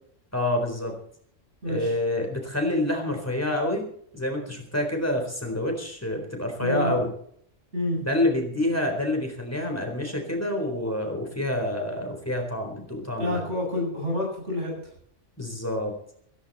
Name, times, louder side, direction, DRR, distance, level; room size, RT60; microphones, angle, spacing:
voice 1, 0.3-0.9 1.6-3.9 4.1-7.1 8.0-13.4 15.4-15.9, left 1 dB, 10° left, 3 dB, 4.1 m, -27 dB
voice 2, 1.6-2.0 6.6-6.9 7.7-8.0 13.2-14.8, left 1 dB, 65° right, -1 dB, 8.4 m, -28 dB
17.0 x 15.5 x 4.3 m, 0.62 s
omnidirectional pair, 1.3 m